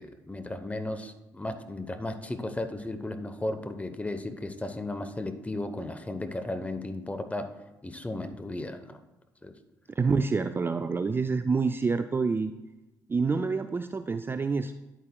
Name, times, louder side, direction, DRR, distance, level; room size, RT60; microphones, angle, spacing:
voice 1, 0.0-7.5 7.8-9.0 9.4-9.5, left 2 dB, 15° left, 9 dB, 0.8 m, -35 dB
voice 2, 10.0-12.5 13.1-14.7, right 4 dB, 25° right, 9 dB, 0.3 m, -27 dB
10.0 x 8.6 x 2.3 m, 1.0 s
hypercardioid pair, 55°, 10 cm